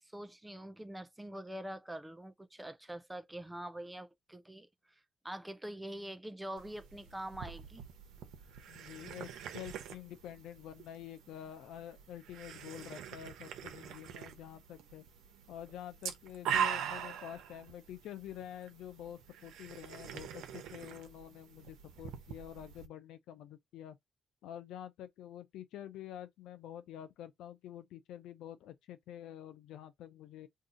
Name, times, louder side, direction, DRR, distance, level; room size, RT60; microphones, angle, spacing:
voice 1, 0.0-5.0 5.2-7.8, right 1 dB, 10° right, 0.5 m, -45 dB
sound 1, 6.6-22.9, right 8 dB, 85° right, 0.7 m, -43 dB
voice 2, 8.7-15.0 15.5-24.0 24.4-30.5, left 11 dB, 85° left, 0.5 m, -48 dB
2.7 x 2.4 x 3.7 m
cardioid pair, 90°, 0 cm